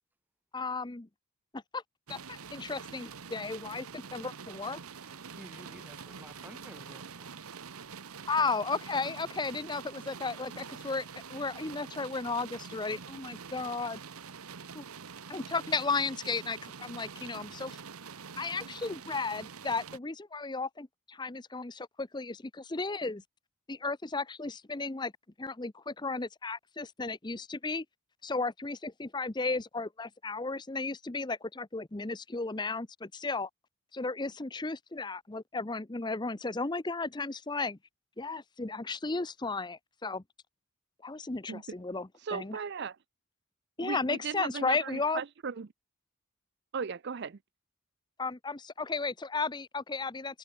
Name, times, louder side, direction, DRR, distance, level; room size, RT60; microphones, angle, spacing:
voice 1, 0.5-1.1 1.5-1.8 2.1-4.8 8.3-14.0 14.7-14.8 15.3-17.8 18.4-23.2 23.7-25.1 25.4-27.8 28.2-33.5 33.9-37.8 38.2-40.2 41.0-42.6 43.8-45.2 48.2-50.4, left 3 dB, 20° left, 0.7 m, -34 dB
sound 1, 2.1-20.0, right 6 dB, 90° right, 1.1 m, -46 dB
voice 2, 4.9-7.5, right 1 dB, 10° right, 2.1 m, -52 dB
voice 3, 42.2-43.0 43.8-45.7 46.7-47.4, right 6 dB, 50° right, 0.5 m, -37 dB
head